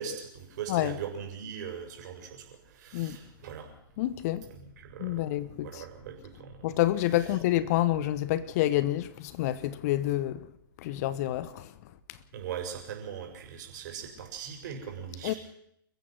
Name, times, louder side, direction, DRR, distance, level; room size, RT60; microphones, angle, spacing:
voice 1, 0.0-2.4 2.7-3.7 4.5-5.3 5.5-6.6 12.3-15.4, right 7 dB, 50° right, 6.5 m, -40 dB
voice 2, 0.7-1.0 2.9-3.2 4.0-4.5 5.0-5.8 6.6-10.5 10.8-11.7 15.2-15.3, left 14 dB, 45° left, 1.2 m, -28 dB
29.0 x 15.0 x 6.2 m
figure-of-eight pair, 110°, 12 cm